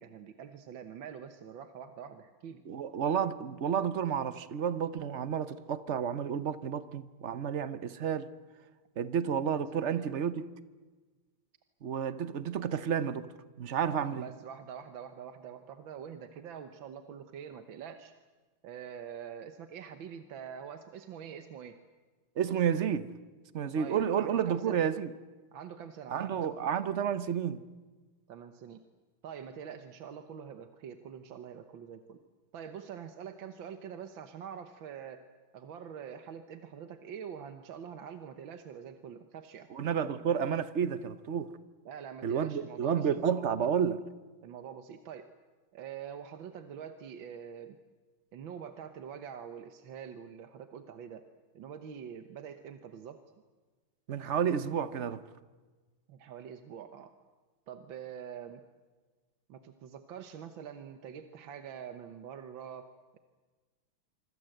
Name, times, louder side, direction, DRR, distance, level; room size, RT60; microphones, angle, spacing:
voice 1, 0.0-2.6 9.7-10.1 14.1-18.1 18.6-21.8 23.8-24.9 25.5-26.6 28.3-28.8 29.2-32.2 32.5-35.2 35.5-39.7 41.9-43.1 44.4-45.3 45.7-47.8 48.3-51.3 51.5-53.2 56.1-57.1 57.7-58.7 59.5-63.2, right 8 dB, 75° right, 1.8 m, -45 dB
voice 2, 2.7-8.3 9.0-10.5 11.8-13.3 13.6-14.3 22.4-23.1 23.5-25.1 26.1-27.6 39.7-41.5 42.2-44.0 54.1-55.2, right 8 dB, 50° right, 0.9 m, -31 dB
25.5 x 25.5 x 7.9 m
omnidirectional pair, 2.2 m